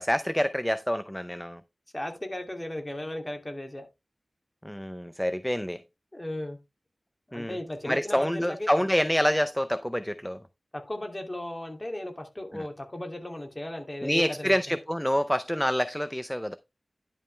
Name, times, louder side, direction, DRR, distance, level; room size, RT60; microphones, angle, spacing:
voice 1, 0.0-1.6 4.6-5.8 7.3-7.6 7.8-10.4 12.5-12.6 14.0-16.6, equal, 5° left, 0.5 m, -27 dB
voice 2, 1.9-3.9 6.1-6.6 7.3-8.9 10.7-14.8, left 1 dB, 25° left, 2.6 m, -36 dB
11.0 x 5.5 x 3.3 m
wide cardioid pair, 65°, 0 cm